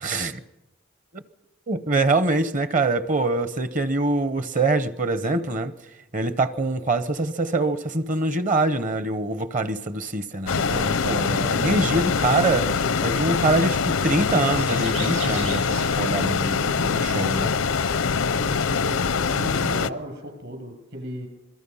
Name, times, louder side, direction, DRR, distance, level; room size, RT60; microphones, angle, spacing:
voice 1, 0.0-0.4 1.1-1.2 1.7-5.7 6.1-12.7 13.0-17.5, right 2 dB, 40° right, 0.9 m, -24 dB
sound 1, 10.5-19.9, left 5 dB, 85° left, 0.7 m, -23 dB
sound 2, 12.3-18.4, right 7 dB, 75° right, 6.7 m, -43 dB
voice 2, 18.3-19.1 19.3-21.3, equal, 60° right, 7.5 m, -36 dB
27.0 x 22.5 x 5.6 m
head